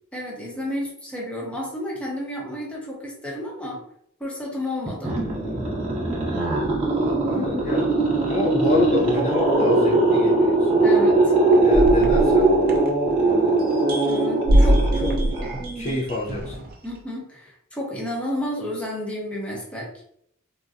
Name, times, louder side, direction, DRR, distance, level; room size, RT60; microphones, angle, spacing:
voice 1, 0.1-3.8 4.2-5.1 10.8-11.2 14.0-15.2 16.8-19.9, left 1 dB, 5° left, -4 dB, 0.8 m, -31 dB
sound 1, 4.9-16.0, right 2 dB, 30° right, 1.0 m, -20 dB
voice 2, 5.2-5.7 7.2-10.9 11.6-12.5 13.1-13.6 14.6-15.1 15.8-16.6, left 2 dB, 35° left, -4 dB, 0.5 m, -28 dB
sound 2, 11.7-13.3 13.7-16.7, equal, 45° right, 0.5 m, -22 dB
3.7 x 2.2 x 2.5 m, 0.69 s
head